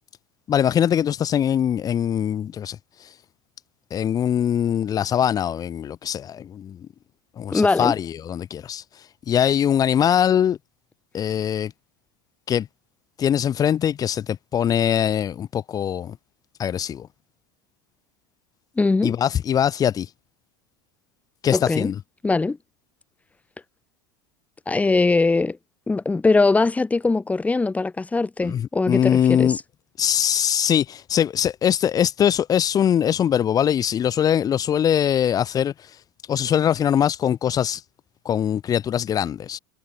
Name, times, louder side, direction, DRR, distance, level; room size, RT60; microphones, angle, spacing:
voice 1, 0.5-3.1 3.9-6.8 7.4-8.8 9.3-10.6 11.1-11.7 12.5-12.7 13.2-16.2 16.6-17.1 19.0-20.1 21.4-22.0 28.4-29.6 30.0-35.7 36.3-37.8 38.3-39.6, left 9 dB, 35° left, 5.2 m, -22 dB
voice 2, 7.5-7.9 18.8-19.1 21.5-21.9 22.2-22.6 24.7-25.6 25.9-29.5, left 3 dB, 15° left, 4.9 m, -21 dB
supercardioid pair, 105°, 11 cm